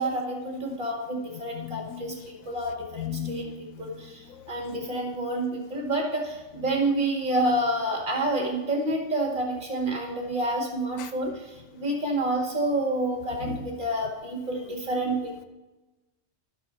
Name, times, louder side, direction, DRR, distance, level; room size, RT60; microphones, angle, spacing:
voice 1, 0.0-15.4, right 1 dB, 40° right, 2.0 m, -29 dB
voice 2, 1.6-2.0 3.0-3.5 13.5-13.6, left 9 dB, 85° left, 1.1 m, -34 dB
12.0 x 6.2 x 4.3 m
omnidirectional pair, 1.4 m